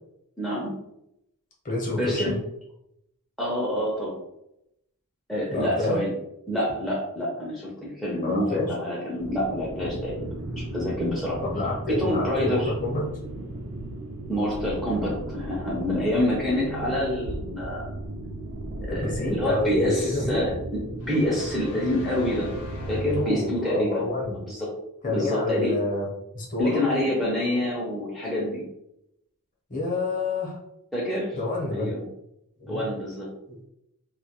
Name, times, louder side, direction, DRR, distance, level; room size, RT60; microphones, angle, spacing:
voice 1, 0.4-0.7 2.0-2.4 3.4-4.2 5.3-6.1 6.5-10.3 10.7-11.4 11.9-12.7 14.3-17.9 18.8-20.8 21.1-22.5 22.9-24.1 24.4-24.7 25.0-25.7 26.6-28.6 30.9-31.4 31.7-32.0 32.7-33.3, left 1 dB, ahead, -5 dB, 0.4 m, -27 dB
voice 2, 1.6-2.4 5.5-6.0 8.2-8.7 11.4-13.0 18.9-20.5 23.2-24.4 25.0-26.1 26.3-26.8 29.7-30.6 31.4-31.9 32.6-32.8 33.5-33.6, left 2 dB, 35° left, -2 dB, 0.7 m, -28 dB
sound 1, 9.2-23.2, right 1 dB, 70° right, 0.4 m, -36 dB
sound 2, 21.0-23.8, left 1 dB, 85° left, 0.6 m, -41 dB
2.2 x 2.1 x 2.8 m, 0.80 s
head